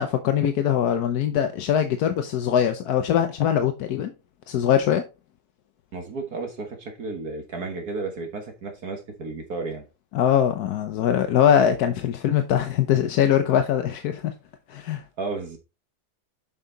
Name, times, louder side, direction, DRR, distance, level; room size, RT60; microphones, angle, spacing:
voice 1, 0.0-4.1 4.5-5.0 10.1-14.2 14.7-15.0, left 9 dB, 65° left, 1.1 m, -22 dB
voice 2, 5.9-9.8 15.2-15.6, right 3 dB, 50° right, 1.8 m, -33 dB
7.3 x 5.8 x 3.9 m
omnidirectional pair, 2.2 m